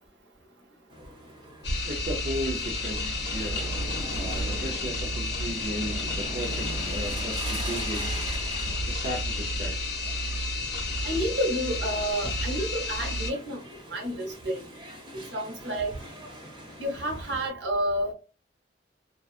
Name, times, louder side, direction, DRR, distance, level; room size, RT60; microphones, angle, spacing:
sound 1, 0.9-17.5, equal, 25° right, 0.9 m, -42 dB
sound 2, 1.6-13.3, left 2 dB, 65° left, 1.2 m, -31 dB
voice 1, 1.9-3.7 4.2-8.3 8.5-9.8, right 1 dB, 40° right, 0.4 m, -36 dB
voice 2, 11.0-13.6 13.9-14.6 15.3-15.9 16.8-18.1, equal, 75° right, 0.9 m, -29 dB
2.6 x 2.3 x 2.3 m
head